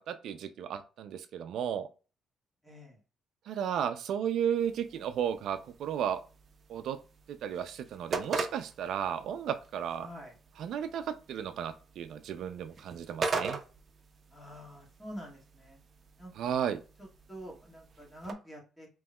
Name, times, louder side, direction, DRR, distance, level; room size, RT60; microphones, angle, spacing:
voice 1, 0.1-1.9 3.5-6.2 6.7-7.0 7.3-10.1 10.6-13.6 16.3-16.8, right 9 dB, 75° right, 10 dB, 0.4 m, -34 dB
voice 2, 2.6-3.0 10.0-10.4 14.3-15.8 16.2-16.5 17.3-18.9, equal, 5° left, -2 dB, 1.9 m, -46 dB
sound 1, 4.6-18.3, right 4 dB, 45° right, 0.7 m, -41 dB
5.2 x 3.0 x 2.2 m, 0.33 s
cardioid pair, 90°, 0 cm